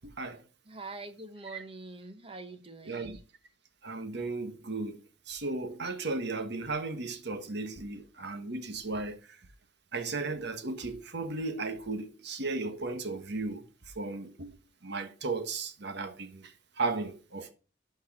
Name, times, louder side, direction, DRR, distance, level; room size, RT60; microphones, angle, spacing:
voice 1, 0.0-0.4 1.5-1.6 2.8-3.2 3.8-5.0 5.3-9.4 9.9-13.7 13.9-14.6 14.8-17.5, right 3 dB, 60° right, 1.4 m, -35 dB
voice 2, 0.7-3.2, right 3 dB, 30° right, 1.1 m, -44 dB
12.0 x 4.7 x 5.9 m
head